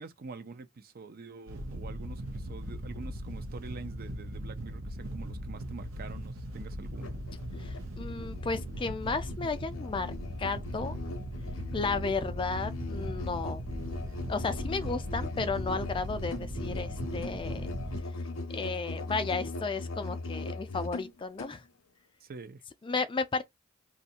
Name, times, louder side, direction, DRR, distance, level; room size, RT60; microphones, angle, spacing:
voice 1, 0.0-7.2 22.2-22.6, right 4 dB, 50° right, 0.5 m, -46 dB
Wind / Boat Water vehicle, 1.5-18.0, equal, 85° right, 0.8 m, -39 dB
Musical instrument, 6.9-21.6, left 2 dB, 90° left, 0.6 m, -39 dB
voice 2, 7.6-10.1 10.4-11.0 11.7-13.6 14.3-17.7 18.5-21.6 22.8-23.4, left 4 dB, 25° left, 0.4 m, -33 dB
2.6 x 2.4 x 4.2 m
head